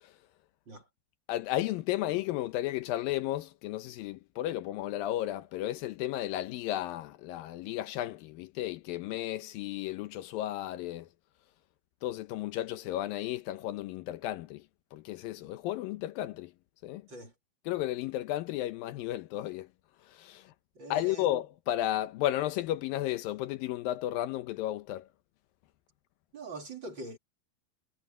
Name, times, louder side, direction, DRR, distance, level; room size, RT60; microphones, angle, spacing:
voice 1, 1.3-11.1 12.0-14.6 14.9-16.5 16.8-17.0 17.7-19.7 20.1-20.4 20.9-25.0, left 14 dB, 80° left, 2.4 m, -33 dB
voice 2, 20.7-21.3 26.3-27.2, right 2 dB, 35° right, 2.8 m, -43 dB
omnidirectional pair, 4.2 m